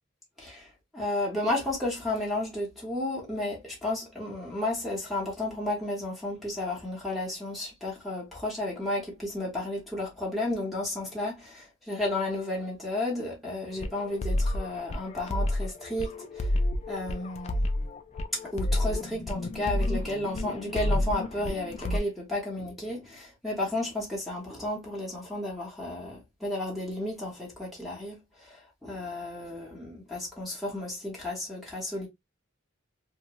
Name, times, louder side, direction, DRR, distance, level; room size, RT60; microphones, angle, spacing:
voice 1, 0.4-16.5 16.9-17.7 18.5-32.1, left 1 dB, ahead, 1.0 m, -33 dB
sound 1, 13.7-22.0, left 1 dB, 30° left, 0.3 m, -30 dB
2.7 x 2.2 x 2.9 m
head